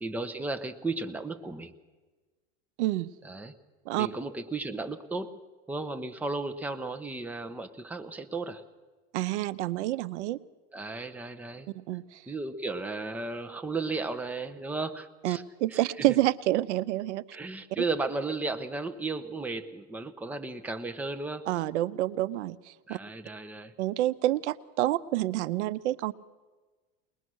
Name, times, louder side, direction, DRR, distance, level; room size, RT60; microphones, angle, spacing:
voice 1, 0.0-1.7 3.2-3.5 4.0-5.3 5.7-8.6 10.7-11.7 12.3-15.4 15.7-15.8 17.3-21.5 22.9-23.7, right 3 dB, 5° right, 7 dB, 0.8 m, -34 dB
voice 2, 2.8-3.1 3.9-4.1 9.1-10.4 11.7-12.2 15.2-17.2 17.8-17.9 21.5-23.0 23.8-26.1, right 15 dB, 80° right, 15 dB, 0.8 m, -28 dB
21.5 x 20.5 x 6.2 m, 1.3 s
supercardioid pair, 145°, 34 cm